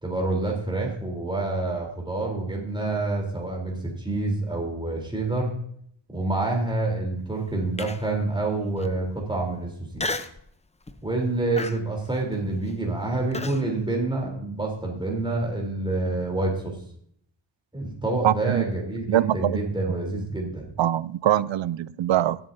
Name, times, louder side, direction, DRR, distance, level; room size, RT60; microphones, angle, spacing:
voice 1, 0.0-5.6 6.1-10.1 11.0-16.7 17.7-20.7, right 2 dB, 10° right, 0 dB, 3.6 m, -27 dB
Human voice, 7.8-8.2 8.8-8.9 10.0-10.4 10.9-11.1 11.6-13.6, left 2 dB, 15° left, 0.7 m, -33 dB
voice 2, 18.2-18.6 19.1-19.6 20.8-22.4, right 12 dB, 80° right, 18 dB, 0.6 m, -23 dB
17.0 x 9.0 x 2.7 m, 0.64 s
wide cardioid pair, 100°, 45 cm